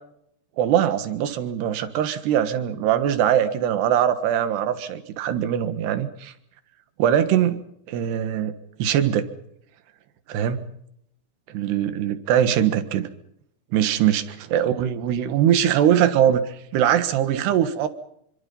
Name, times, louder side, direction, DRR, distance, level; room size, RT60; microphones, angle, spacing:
voice 1, 0.6-6.3 7.0-8.6 8.8-9.3 10.3-10.7 11.5-13.1 13.7-14.2 14.5-17.9, right 10 dB, 75° right, 11 dB, 3.6 m, -22 dB
27.0 x 25.5 x 5.5 m, 0.75 s
omnidirectional pair, 4.8 m